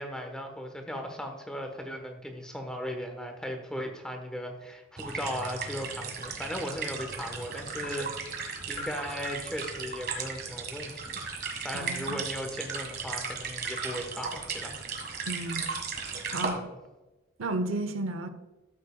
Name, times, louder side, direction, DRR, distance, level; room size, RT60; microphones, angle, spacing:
voice 1, 0.0-11.2 11.6-14.8 16.5-16.8, equal, 5° left, 4 dB, 1.1 m, -37 dB
sound 1, 5.0-16.5, right 5 dB, 50° right, 1.7 m, -36 dB
voice 2, 11.7-12.2 15.3-15.7 16.3-16.7 17.4-18.3, right 2 dB, 90° right, 10 dB, 0.8 m, -33 dB
13.0 x 7.7 x 2.3 m, 1.1 s
head